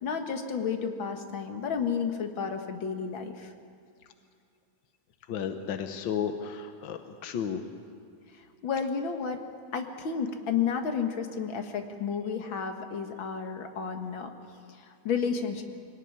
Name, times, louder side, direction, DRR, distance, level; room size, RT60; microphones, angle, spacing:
voice 1, 0.0-3.5 8.6-9.4 9.7-14.3 14.7-15.6, left 6 dB, 50° left, 5 dB, 1.9 m, -31 dB
voice 2, 5.3-7.6, left 7 dB, 65° left, 7 dB, 1.2 m, -33 dB
24.0 x 18.0 x 9.6 m, 2.3 s
omnidirectional pair, 3.4 m